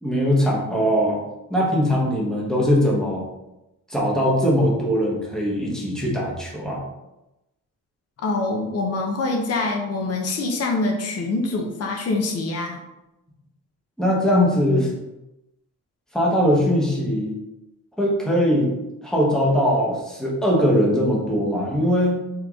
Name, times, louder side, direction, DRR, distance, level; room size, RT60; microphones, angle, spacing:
voice 1, 0.0-1.2 1.5-3.3 3.9-6.8 14.0-14.9 16.1-17.3 18.0-18.7 19.0-22.2, equal, ahead, -4 dB, 1.0 m, -21 dB
voice 2, 8.2-12.8, left 3 dB, 50° left, 1 dB, 0.8 m, -25 dB
4.4 x 3.1 x 3.6 m, 0.94 s
wide cardioid pair, 160°, 31 cm